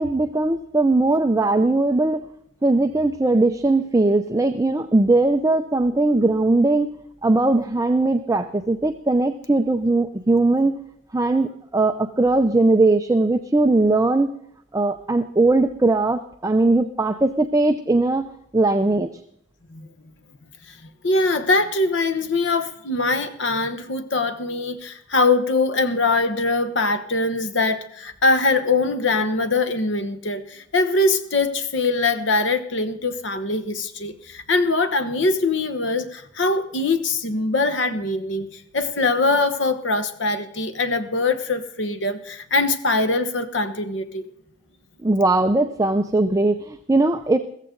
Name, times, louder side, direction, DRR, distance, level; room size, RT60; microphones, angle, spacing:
voice 1, 0.0-2.2 2.6-6.9 7.2-10.8 11.1-14.3 14.7-19.1 45.0-47.4, right 2 dB, 20° right, 8 dB, 0.5 m, -19 dB
voice 2, 21.0-44.3, left 3 dB, 70° left, 9 dB, 1.2 m, -22 dB
15.0 x 15.0 x 3.9 m, 0.71 s
head